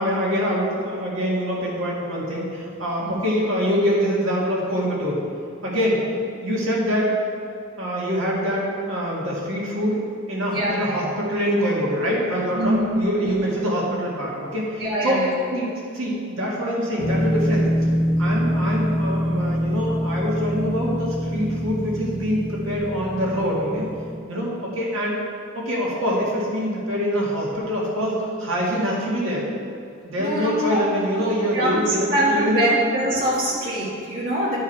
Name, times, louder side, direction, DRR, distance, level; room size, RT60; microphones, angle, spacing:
voice 1, 0.0-5.2 5.6-6.0 6.4-7.1 7.8-10.0 10.3-15.2 15.5-15.7 15.9-17.7 18.2-23.9 24.3-25.2 25.5-29.5 30.0-32.7, equal, 70° right, -5 dB, 2.0 m, -24 dB
voice 2, 10.5-11.1 12.5-13.4 14.8-15.3 30.2-30.8 31.5-34.6, right 1 dB, 45° right, -8 dB, 1.7 m, -24 dB
sound 1, 17.0-24.2, equal, 25° right, 1.7 m, -25 dB
12.0 x 4.8 x 4.6 m, 2.5 s
head